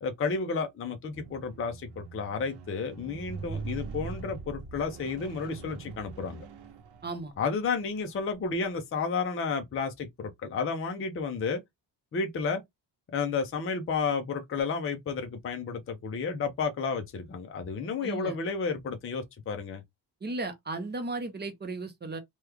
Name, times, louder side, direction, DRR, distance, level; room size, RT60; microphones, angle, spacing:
voice 1, 0.0-6.4 7.4-11.6 12.1-12.6 13.1-19.8, left 5 dB, 30° left, 0.6 m, -32 dB
Squeak, 1.1-7.5 8.2-8.4, right 4 dB, 65° right, 0.9 m, -42 dB
voice 2, 7.0-7.4 18.0-18.4 20.2-22.2, right 3 dB, 25° right, 0.6 m, -35 dB
3.1 x 2.3 x 3.3 m
wide cardioid pair, 155°, 44 cm